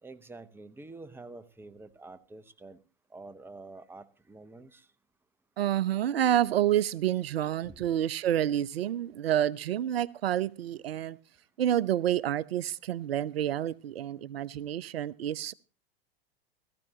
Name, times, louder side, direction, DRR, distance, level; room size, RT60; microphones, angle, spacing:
voice 1, 0.0-2.8 3.1-4.9 7.6-8.0, right 3 dB, 5° right, 0.8 m, -48 dB
voice 2, 5.6-11.2 11.6-15.5, right 11 dB, 75° right, 0.5 m, -28 dB
16.5 x 14.0 x 2.8 m
hypercardioid pair, 90°, 30 cm